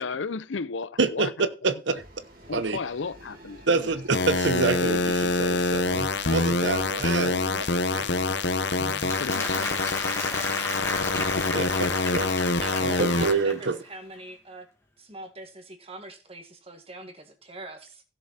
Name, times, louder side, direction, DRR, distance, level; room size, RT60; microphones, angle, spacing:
voice 1, 0.0-1.3 1.7-2.0 2.5-3.9 9.2-10.8 11.0-11.7, left 4 dB, 80° left, 0.6 m, -35 dB
voice 2, 1.0-1.3 1.6-2.0 2.5-2.8 3.7-8.2 8.8-9.1 11.5-11.7 12.1-12.5 12.8-13.8, right 4 dB, 70° right, 0.9 m, -27 dB
sound 1, 1.9-7.8, right 1 dB, 50° right, 2.7 m, -49 dB
sound 2, 4.1-13.3, left 3 dB, 60° left, 0.9 m, -26 dB
Applause, 8.7-13.8, left 2 dB, 15° left, 2.2 m, -34 dB
voice 3, 12.6-14.7 15.0-18.0, right 2 dB, 30° right, 1.9 m, -42 dB
16.0 x 6.9 x 4.2 m
head